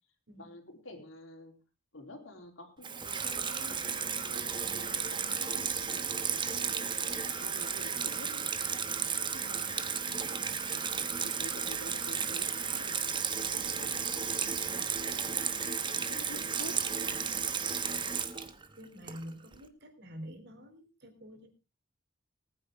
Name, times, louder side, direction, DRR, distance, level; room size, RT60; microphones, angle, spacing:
voice 1, 0.4-1.5 1.9-5.7 6.3-8.4 9.3-10.7 11.2-13.0 13.5-15.3 15.6-15.7 16.1-16.8, left 1 dB, 75° left, 4 dB, 3.8 m, -49 dB
Water tap faucet / Sink (filling or washing), 2.8-19.5, right 6 dB, 25° right, 1.1 m, -33 dB
voice 2, 18.8-21.5, equal, 55° right, 6 dB, 3.4 m, -48 dB
19.5 x 9.6 x 3.7 m, 0.31 s
head